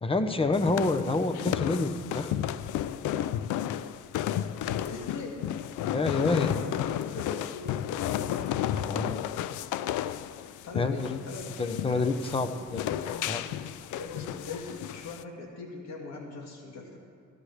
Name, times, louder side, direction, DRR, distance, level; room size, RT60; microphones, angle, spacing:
voice 1, 0.0-2.4 5.9-6.5 8.8-9.2 10.7-11.2 11.6-12.8 13.3-13.4, left 3 dB, 20° left, 8 dB, 0.8 m, -28 dB
sound 1, 0.5-15.2, left 11 dB, 85° left, 0.4 m, -33 dB
voice 2, 4.8-5.4 5.9-8.5 10.5-11.5 11.8-13.6 14.0-17.0, left 3 dB, 65° left, 0 dB, 1.7 m, -41 dB
14.5 x 13.5 x 3.3 m, 2.3 s
cardioid pair, 90°, 30 cm